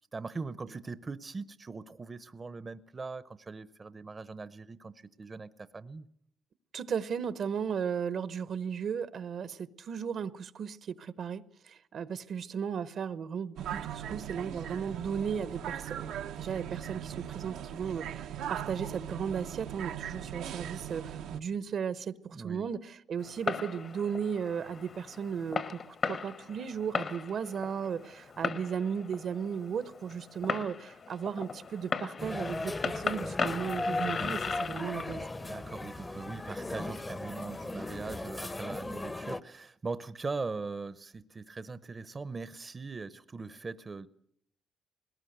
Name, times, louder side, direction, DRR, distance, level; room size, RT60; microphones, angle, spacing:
voice 1, 0.1-6.0 22.3-22.7 35.4-44.1, right 4 dB, 30° right, 0.8 m, -40 dB
voice 2, 6.7-35.2, right 7 dB, 60° right, 0.9 m, -35 dB
sound 1, 13.6-21.4, right 10 dB, 85° right, 0.9 m, -39 dB
Fireworks, 23.2-38.0, left 5 dB, 50° left, 1.4 m, -38 dB
sound 2, 32.2-39.4, left 2 dB, 20° left, 0.9 m, -37 dB
21.0 x 19.0 x 8.0 m
cardioid pair, 90°, 0 cm